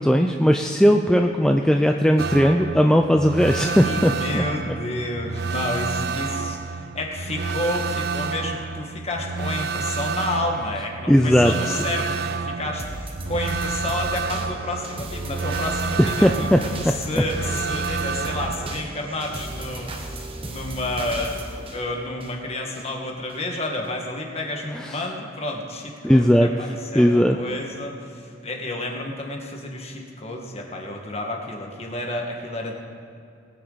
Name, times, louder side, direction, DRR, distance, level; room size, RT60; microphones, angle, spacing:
voice 1, 0.0-4.7 11.1-11.5 16.0-16.6 16.8-16.9 24.8-25.0 26.0-26.5 26.9-27.4, equal, 5° left, 3 dB, 0.4 m, -18 dB
sound 1, 2.2-18.8, right 5 dB, 60° right, 0.5 m, -29 dB
voice 2, 3.7-16.5 16.9-32.7, left 2 dB, 35° left, 1 dB, 1.7 m, -30 dB
sound 2, 12.8-22.8 23.3-23.4, right 1 dB, 30° right, 1.1 m, -36 dB
20.5 x 9.5 x 4.1 m, 2.6 s
head